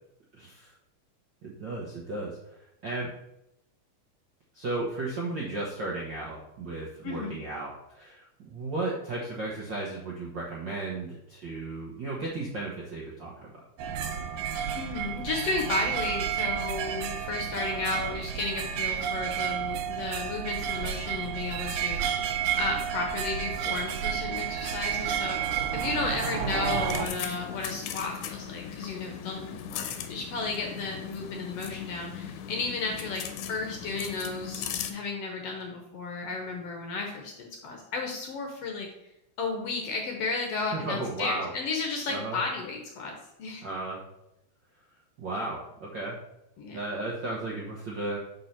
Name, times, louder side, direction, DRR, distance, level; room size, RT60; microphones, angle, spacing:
voice 1, 0.3-0.7 1.4-2.4 2.8-3.1 4.5-13.5 40.6-41.5 42.1-42.4 43.6-44.0 45.2-46.1 46.7-48.2, right 2 dB, 60° right, -5 dB, 1.1 m, -34 dB
voice 2, 7.0-7.4 14.8-33.2 33.5-38.9 39.4-43.1 43.4-43.7 46.6-46.8, left 3 dB, 65° left, 2 dB, 1.6 m, -33 dB
sound 1, 13.8-27.1, right 8 dB, 90° right, 2.1 m, -31 dB
sound 2, 26.7-34.9, left 8 dB, 90° left, 2.1 m, -38 dB
5.3 x 4.7 x 5.7 m, 0.85 s
omnidirectional pair, 3.5 m